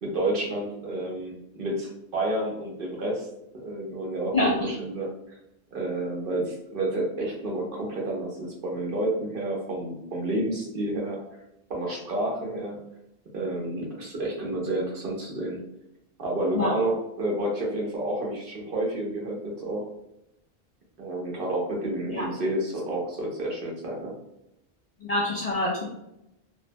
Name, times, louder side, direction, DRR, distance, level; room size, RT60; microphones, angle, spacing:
voice 1, 0.0-3.3 3.5-5.1 5.7-11.2 11.7-12.8 13.3-15.6 16.2-19.8 21.0-24.1, right 1 dB, 60° right, -1 dB, 0.9 m, -30 dB
voice 2, 4.3-4.7 16.5-16.7 22.1-22.2 25.1-25.9, left 1 dB, 50° left, -4 dB, 0.5 m, -25 dB
2.7 x 2.1 x 2.5 m, 0.86 s
omnidirectional pair, 1.1 m